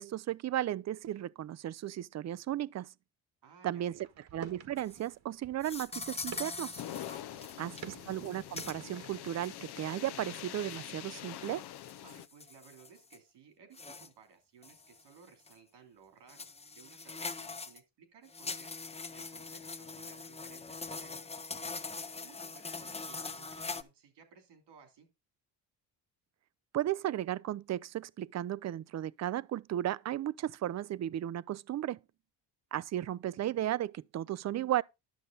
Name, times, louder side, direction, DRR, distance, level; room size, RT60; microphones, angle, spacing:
voice 1, 0.0-2.9 3.6-4.1 4.3-6.8 7.6-11.6 26.7-32.0 32.7-34.8, right 12 dB, 40° right, 0.5 m, -35 dB
voice 2, 3.4-4.1 7.3-8.0 12.0-16.5 16.7-18.8 19.1-21.3 22.2-25.1, right 6 dB, 80° right, 3.2 m, -59 dB
sound 1, 3.9-9.2, right 8 dB, 60° right, 1.6 m, -50 dB
sound 2, 4.8-5.1 5.6-7.8 8.1-8.3 8.6-8.7 9.4-9.5 10.3-10.9 11.4-13.2 13.7-14.1 14.6-15.0 15.5-15.6 16.3-17.8 18.3-23.8, left 4 dB, 15° left, 0.6 m, -42 dB
sound 3, 6.8-12.3, left 12 dB, 70° left, 0.7 m, -45 dB
11.0 x 6.6 x 3.9 m
cardioid pair, 80°, 41 cm